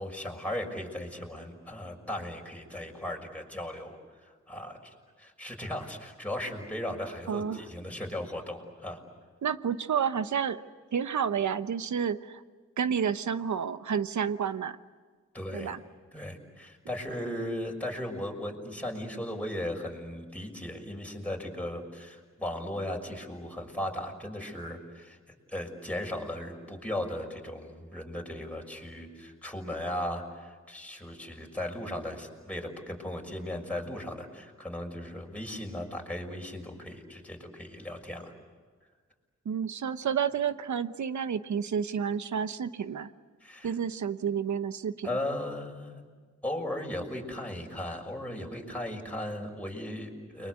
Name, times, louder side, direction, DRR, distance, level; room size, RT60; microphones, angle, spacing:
voice 1, 0.0-9.0 15.3-15.7 16.1-25.2 25.5-38.3 43.4-43.8 45.0-46.0 46.4-50.5, left 1 dB, 5° left, 0 dB, 6.3 m, -37 dB
voice 2, 7.3-7.6 9.4-10.6 10.9-12.4 12.8-14.8 15.5-15.8 39.4-43.1 43.6-45.1, right 7 dB, 80° right, 12 dB, 1.1 m, -30 dB
30.0 x 23.5 x 8.3 m, 1.5 s
cardioid pair, 70°, 29 cm